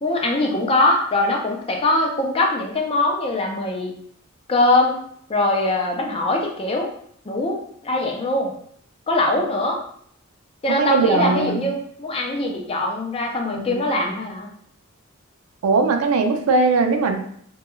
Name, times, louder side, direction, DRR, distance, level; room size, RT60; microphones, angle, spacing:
voice 1, 0.0-3.9 4.5-5.0 5.3-6.9 7.3-8.5 9.1-9.8 10.6-14.5, left 2 dB, 25° left, 1 dB, 0.4 m, -22 dB
voice 2, 10.7-11.6 13.5-13.8 15.6-17.2, right 4 dB, 80° right, 5 dB, 0.4 m, -19 dB
2.3 x 2.2 x 2.9 m, 0.63 s
head